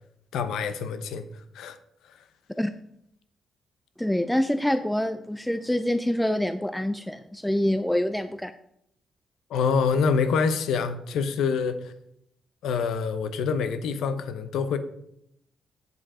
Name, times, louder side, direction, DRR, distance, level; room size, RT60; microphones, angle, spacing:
voice 1, 0.3-1.2 1.5-1.8 2.1-2.2 9.5-11.9 12.6-14.8, left 5 dB, 90° left, 11 dB, 0.7 m, -26 dB
voice 2, 4.0-8.5, left 1 dB, 5° left, 10 dB, 0.3 m, -26 dB
8.1 x 5.0 x 4.8 m, 0.75 s
cardioid pair, 110°, 0 cm